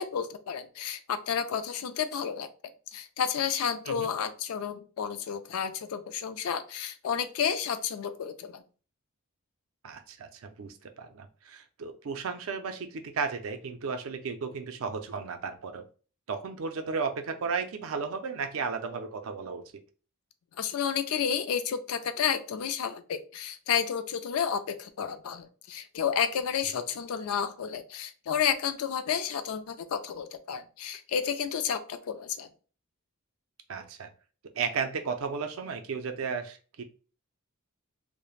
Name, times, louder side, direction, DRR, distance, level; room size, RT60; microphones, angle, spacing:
voice 1, 0.0-2.5 2.9-8.6 20.6-32.5, left 7 dB, 70° left, 11 dB, 0.4 m, -31 dB
voice 2, 9.8-15.9 16.3-19.6 33.7-34.1 34.5-36.8, right 5 dB, 65° right, 7 dB, 0.4 m, -34 dB
3.1 x 2.1 x 2.3 m, 0.37 s
head